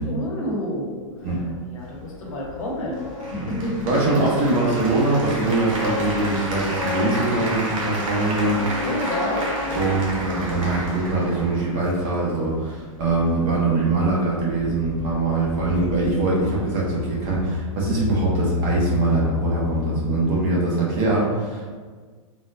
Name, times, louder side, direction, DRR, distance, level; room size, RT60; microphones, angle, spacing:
voice 1, 0.1-1.0 1.6-3.0 3.3-3.9 8.8-9.9, left 1 dB, 75° left, -2 dB, 0.9 m, -29 dB
sound 1, 1.2-11.1, left 3 dB, 30° left, 0.5 m, -34 dB
sound 2, 1.6-20.4, left 6 dB, 5° right, 1.2 m, -34 dB
Applause, 3.2-12.2, right 1 dB, 75° right, 0.9 m, -31 dB
voice 2, 3.8-8.9 9.7-21.7, right 2 dB, 40° right, -4 dB, 0.9 m, -22 dB
3.7 x 2.2 x 2.5 m, 1.5 s
supercardioid pair, 155°, 17 cm